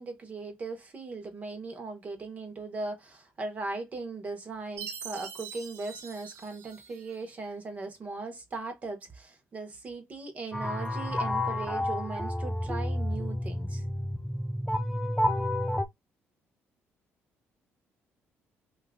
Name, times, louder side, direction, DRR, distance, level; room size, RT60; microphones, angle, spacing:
voice 1, 0.0-13.8, right 3 dB, 30° right, 0.9 m, -38 dB
Chime, 4.8-7.2, right 7 dB, 85° right, 1.0 m, -43 dB
sound 1, 10.5-15.8, left 1 dB, 5° left, 0.3 m, -30 dB
2.8 x 2.4 x 3.6 m
cardioid pair, 125°, 5 cm